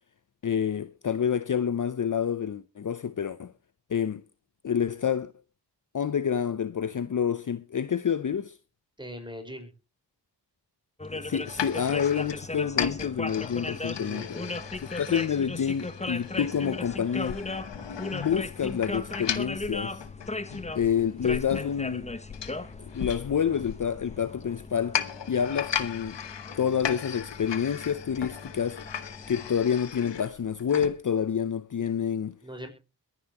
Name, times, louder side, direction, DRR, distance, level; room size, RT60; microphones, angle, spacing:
voice 1, 0.4-3.5 3.9-4.2 4.6-5.3 5.9-8.6 11.1-14.4 14.8-17.4 18.1-20.0 20.7-22.1 22.8-26.2 26.6-28.8 29.3-32.3, left 8 dB, 45° left, 0.7 m, -28 dB
voice 2, 9.0-9.7 13.9-14.6 32.4-32.7, equal, 10° right, 5.1 m, -40 dB
sound 1, 11.0-29.5, left 2 dB, 15° left, 1.0 m, -38 dB
sound 2, 11.4-31.0, left 8 dB, 75° left, 1.1 m, -37 dB
22.5 x 10.0 x 3.0 m
cardioid pair, 55°, 43 cm